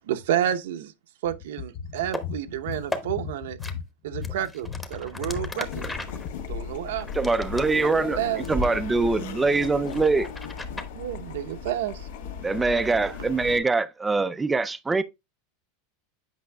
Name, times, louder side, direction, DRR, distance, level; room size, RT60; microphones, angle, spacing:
voice 1, 0.1-0.9 1.2-3.6 4.0-5.8 6.5-7.1 7.8-7.9 8.2-8.4 10.9-12.0, right 11 dB, 85° right, 0.8 m, -29 dB
voice 2, 1.7-4.4 4.6-5.5 6.2-6.3, left 7 dB, 40° left, 0.6 m, -36 dB
sound 1, 2.0-2.2 2.7-3.0 3.6-3.7 4.2-8.1 8.4-8.7 9.0-10.9, left 1 dB, 10° left, 0.9 m, -35 dB
Laughter, 5.2-13.6, left 11 dB, 70° left, 0.8 m, -47 dB
sound 2, 5.6-13.6, left 6 dB, 90° left, 1.8 m, -37 dB
voice 3, 7.1-10.3 12.4-15.0, right 3 dB, 10° right, 0.4 m, -24 dB
8.2 x 5.6 x 2.2 m
supercardioid pair, 150°, 0 cm